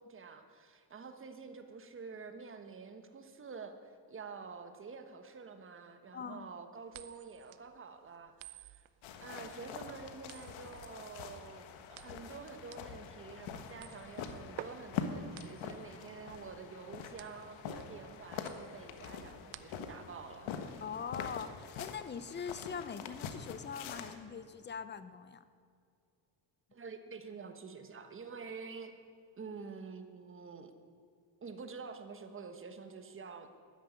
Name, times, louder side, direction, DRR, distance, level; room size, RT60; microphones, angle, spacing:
voice 1, 0.0-8.8 9.2-20.8 26.7-28.9 29.4-30.7 31.4-33.5, right 5 dB, 25° right, 7 dB, 1.3 m, -48 dB
voice 2, 6.1-6.5 20.8-25.5, left 6 dB, 25° left, 13 dB, 0.6 m, -42 dB
sound 1, 6.9-20.1, right 14 dB, 75° right, 0.8 m, -53 dB
sound 2, 9.0-24.1, left 7 dB, 80° left, 1.5 m, -44 dB
13.5 x 10.0 x 9.8 m, 2.4 s
cardioid pair, 150°, 47 cm